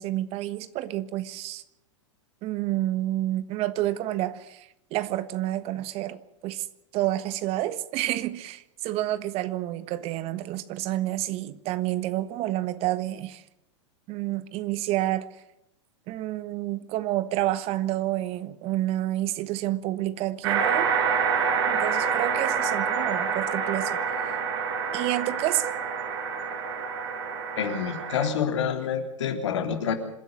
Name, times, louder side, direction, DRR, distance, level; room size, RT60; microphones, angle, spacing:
voice 1, 0.0-1.6 2.4-6.7 6.9-13.4 14.1-15.3 16.1-20.9 21.7-24.4 24.9-25.8, right 15 dB, 40° right, 1.3 m, -29 dB
sound 1, 20.4-28.3, right 6 dB, 55° right, 5.4 m, -27 dB
voice 2, 27.6-29.9, left 7 dB, 70° left, 3.5 m, -27 dB
26.5 x 11.0 x 9.9 m
hypercardioid pair, 100°, 15 cm